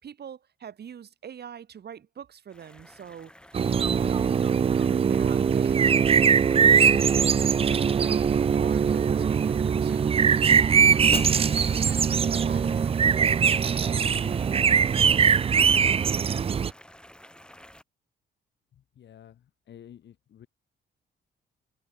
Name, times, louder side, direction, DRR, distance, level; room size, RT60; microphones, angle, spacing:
voice 1, 0.0-3.3 3.7-4.6 5.0-6.1 6.5-9.5 9.8-10.2 10.5-11.3 11.6-12.9 13.2-14.1, right 8 dB, 55° right, 4.0 m, -43 dB
sound 1, 2.5-17.8, left 1 dB, 5° left, 2.6 m, -52 dB
sound 2, 3.5-16.7, right 7 dB, 30° right, 0.4 m, -21 dB
Shatter, 11.1-12.5, left 4 dB, 30° left, 1.7 m, -38 dB
voice 2, 18.7-20.5, left 10 dB, 60° left, 2.3 m, -51 dB
cardioid pair, 90°, 20 cm